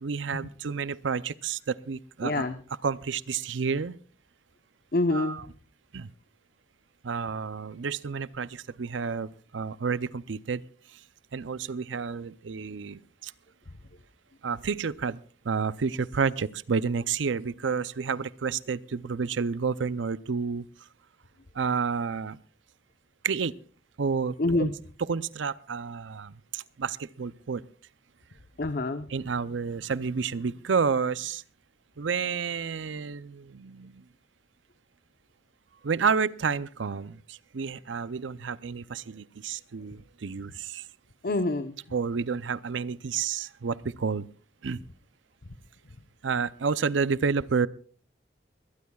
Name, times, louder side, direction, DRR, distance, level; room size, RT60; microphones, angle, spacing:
voice 1, 0.0-2.4 2.8-4.0 5.1-5.4 5.9-6.1 7.0-10.6 10.9-11.0 11.3-13.3 14.4-20.6 21.5-22.4 23.2-23.6 24.0-24.3 24.6-24.7 25.1-27.6 29.1-31.4 32.0-34.0 35.8-40.8 41.9-44.3 44.6-44.8 46.2-47.7, right 5 dB, 90° right, 18 dB, 0.6 m, -30 dB
voice 2, 2.2-2.6 4.9-5.4 24.4-24.7 28.6-29.1 41.2-41.8 45.4-45.6, left 2 dB, 55° left, 9 dB, 0.8 m, -27 dB
23.0 x 18.0 x 2.4 m, 0.42 s
head